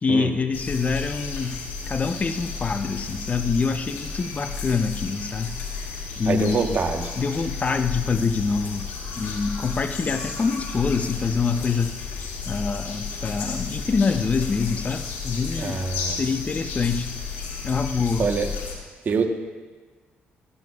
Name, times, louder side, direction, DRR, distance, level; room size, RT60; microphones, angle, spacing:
voice 1, 0.0-1.6 1.9-5.6 6.2-6.8 7.2-8.9 9.2-12.0 12.5-15.8 16.2-17.1 17.6-18.3, left 5 dB, 35° left, 9 dB, 0.7 m, -25 dB
sound 1, 0.5-18.7, left 5 dB, 85° left, 2.1 m, -33 dB
voice 2, 6.3-7.1 15.6-16.2 18.2-18.5 19.0-19.3, right 5 dB, 50° right, 5 dB, 1.2 m, -24 dB
16.0 x 12.5 x 2.4 m, 1.4 s
cardioid pair, 75°, 4 cm